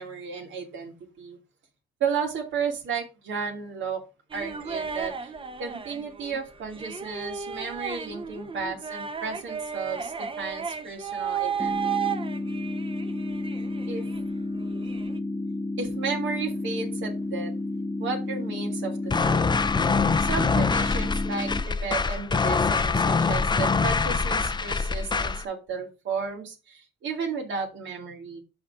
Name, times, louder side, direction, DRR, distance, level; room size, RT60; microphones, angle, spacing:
voice 1, 0.0-1.4 2.0-4.0 4.3-5.3 5.6-12.1 13.9-14.0 15.8-17.5 18.0-19.5 20.2-28.4, right 5 dB, 75° right, 1 dB, 2.7 m, -33 dB
sound 1, 4.3-14.2 14.5-15.2, right 7 dB, 25° right, 1.0 m, -34 dB
sound 2, 11.6-21.6, left 2 dB, ahead, 0.9 m, -31 dB
sound 3, 19.1-25.4, left 4 dB, 20° left, 0.6 m, -24 dB
5.6 x 5.4 x 6.0 m, 0.29 s
cardioid pair, 90°, 20 cm